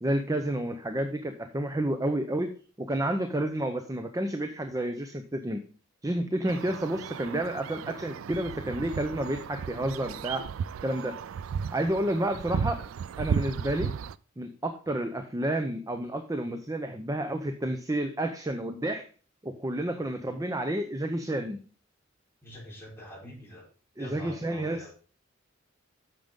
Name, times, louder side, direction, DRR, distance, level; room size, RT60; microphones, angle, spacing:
voice 1, 0.0-5.6 6.0-10.4 10.8-11.2 11.7-12.8 13.2-13.9 14.4-19.1 19.4-21.6 24.0-24.9, right 1 dB, 15° right, 7 dB, 0.7 m, -30 dB
sound 1, 6.5-14.1, right 6 dB, 75° right, 0.3 m, -35 dB
voice 2, 22.4-23.7 24.0-24.9, equal, 10° left, -4 dB, 4.3 m, -45 dB
8.8 x 6.6 x 3.7 m, 0.39 s
head